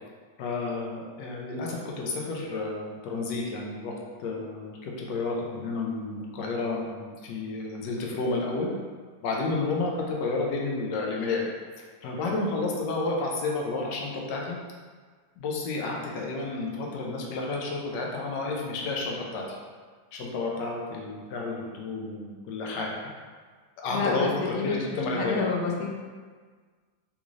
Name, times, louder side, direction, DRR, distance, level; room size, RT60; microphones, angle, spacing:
voice 1, 0.4-3.9 4.2-8.7 9.2-11.5 12.0-14.6 15.4-19.6 20.1-23.0 23.8-25.4, left 3 dB, 85° left, -1 dB, 1.3 m, -31 dB
voice 2, 23.9-25.9, left 4 dB, 70° left, 0 dB, 0.9 m, -29 dB
3.6 x 2.5 x 3.0 m, 1.5 s
omnidirectional pair, 1.8 m